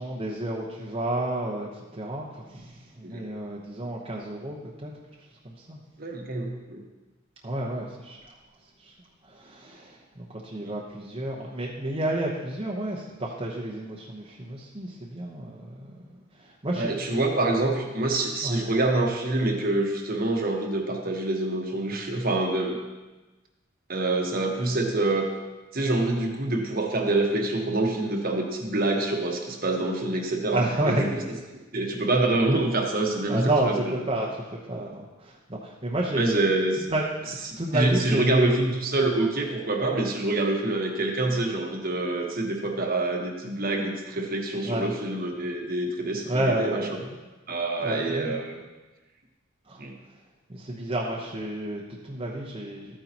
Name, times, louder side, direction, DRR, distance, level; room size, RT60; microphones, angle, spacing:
voice 1, 0.0-4.9 5.4-5.8 7.4-8.2 8.8-8.9 9.3-16.0 16.4-16.9 18.4-18.6 30.5-31.1 33.3-36.2 36.9-38.5 44.6-44.9 46.3-47.0 47.8-48.4 49.7-49.8 50.5-52.9, right 1 dB, 30° right, -3 dB, 1.0 m, -30 dB
voice 2, 6.0-6.8 10.6-10.7 16.7-22.8 23.9-25.3 25.7-31.2 31.7-33.9 36.2-36.9 37.4-47.0 47.5-48.6 49.8-49.9, right 2 dB, 45° right, 1 dB, 1.3 m, -26 dB
13.0 x 9.3 x 3.0 m, 1.2 s
head